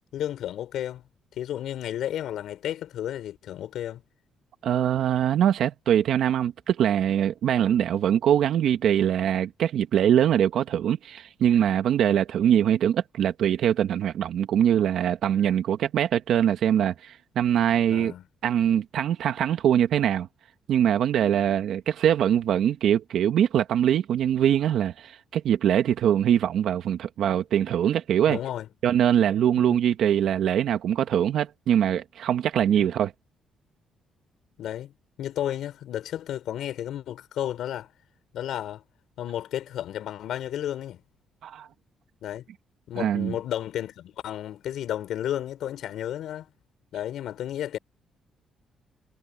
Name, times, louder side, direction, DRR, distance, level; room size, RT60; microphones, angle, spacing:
voice 1, 0.1-1.0 1.3-4.0 17.9-18.2 28.3-28.7 29.7-29.8 32.8-32.9 34.6-34.9 35.2-37.9 38.3-38.8 39.2-41.0 42.2-42.5 42.9-46.5 46.9-47.8, left 11 dB, 75° left, 5.0 m, -32 dB
voice 2, 4.6-18.1 18.4-20.3 20.7-28.4 28.8-33.1 41.4-41.7 43.0-43.3, right 10 dB, 75° right, 1.4 m, -23 dB
cardioid pair, 90°, 0 cm